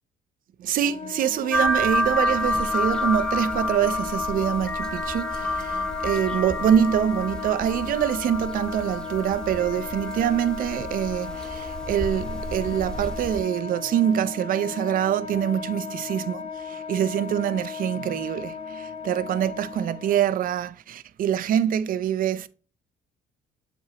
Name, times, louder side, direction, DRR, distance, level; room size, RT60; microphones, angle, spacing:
voice 1, 0.6-22.5, right 9 dB, 55° right, 0.5 m, -25 dB
Wind instrument woodwind instrument, 0.7-20.2, left 6 dB, 35° left, 0.7 m, -36 dB
sound 1, 1.5-13.4, left 1 dB, 5° left, 0.9 m, -29 dB
8.0 x 5.7 x 2.9 m
cardioid pair, 110°, 17 cm